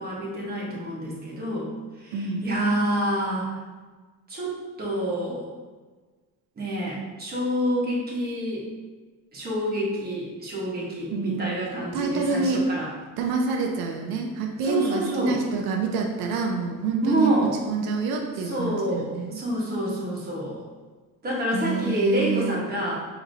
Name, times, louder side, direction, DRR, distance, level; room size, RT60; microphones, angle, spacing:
voice 1, 0.0-1.7 2.0-3.5 4.3-5.5 6.6-8.7 9.3-12.9 14.6-15.4 17.0-17.6 18.4-20.6 21.2-23.1, right 1 dB, 25° right, -5 dB, 1.2 m, -27 dB
voice 2, 2.1-2.4 11.1-11.5 11.9-12.6 13.2-17.3 17.7-19.4 21.5-22.6, right 4 dB, 90° right, 2 dB, 0.6 m, -27 dB
4.9 x 2.8 x 2.7 m, 1.3 s
cardioid pair, 135°, 36 cm